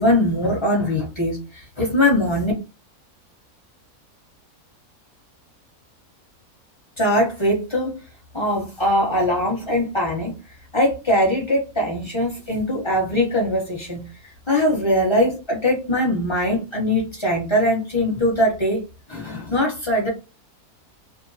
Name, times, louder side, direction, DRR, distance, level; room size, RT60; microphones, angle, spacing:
voice 1, 0.0-2.5 7.0-8.0 8.3-10.3 10.7-14.0 14.5-18.8 19.1-20.1, left 1 dB, 25° left, 0.8 m, -21 dB
2.7 x 2.1 x 2.6 m
omnidirectional pair, 1.6 m